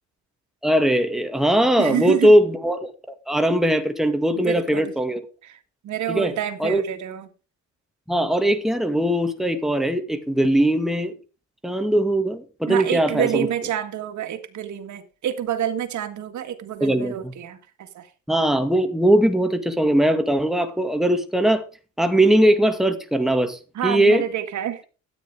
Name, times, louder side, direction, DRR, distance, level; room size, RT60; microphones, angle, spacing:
voice 1, 0.6-2.9 3.3-5.2 6.1-6.3 6.6-6.8 8.1-11.1 11.6-13.5 16.8-17.3 18.3-21.6 22.0-24.2, right 1 dB, ahead, 2.1 m, -20 dB
voice 2, 1.8-2.3 4.3-4.9 5.4-5.6 5.8-7.3 12.7-18.1 23.7-24.8, right 10 dB, 70° right, 2.1 m, -28 dB
13.0 x 9.5 x 4.9 m
cardioid pair, 90°, 30 cm